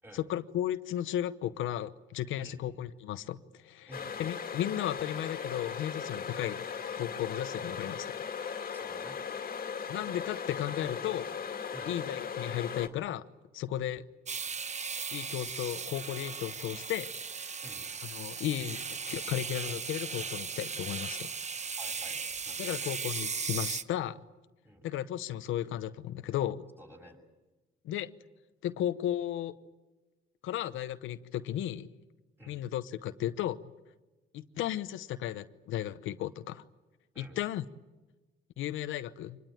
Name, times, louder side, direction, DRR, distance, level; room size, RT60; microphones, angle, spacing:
voice 1, 0.1-3.9 4.2-6.6 7.0-8.1 9.9-11.3 11.9-13.2 13.5-14.0 15.1-17.1 18.1-21.3 22.6-24.2 24.8-26.6 27.8-28.1 28.6-29.5 30.4-31.9 32.5-33.6 34.3-36.6 37.2-37.6 38.6-39.4, left 12 dB, 85° left, 11 dB, 0.9 m, -34 dB
sound 1, 3.9-12.9, left 6 dB, 45° left, 2.1 m, -38 dB
voice 2, 8.7-9.2 11.7-11.9 17.6-17.8 21.8-23.0 24.6-24.8 26.8-27.2 32.4-32.6 37.1-37.4, equal, 10° right, 3 dB, 6.4 m, -50 dB
Razor Shaver Electric, 14.3-23.8, right 5 dB, 35° right, 1.0 m, -37 dB
25.5 x 20.5 x 9.2 m, 1.2 s
cardioid pair, 90°, 20 cm